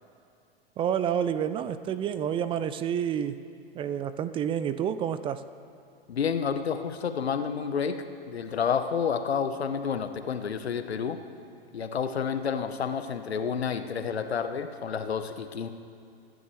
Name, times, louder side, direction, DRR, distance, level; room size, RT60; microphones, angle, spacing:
voice 1, 0.8-3.4 3.7-5.4, right 9 dB, 20° right, 13 dB, 0.3 m, -29 dB
voice 2, 6.1-11.2 11.7-15.7, left 6 dB, 85° left, 9 dB, 1.0 m, -30 dB
24.0 x 10.5 x 3.2 m, 2.4 s
hypercardioid pair, 110°, 31 cm